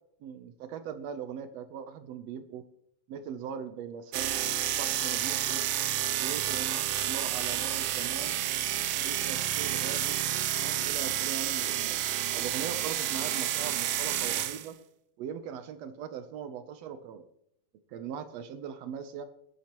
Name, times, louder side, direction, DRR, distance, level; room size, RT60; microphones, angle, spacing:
voice 1, 0.2-2.6 3.1-4.4 4.7-5.7 6.2-8.4 9.0-10.2 10.6-12.0 12.3-14.8 15.2-17.3 17.9-19.2, right 7 dB, 70° right, 9 dB, 1.8 m, -40 dB
sound 1, 4.1-14.7, right 12 dB, 90° right, 1.3 m, -30 dB
20.5 x 10.5 x 3.0 m, 0.74 s
omnidirectional pair, 3.4 m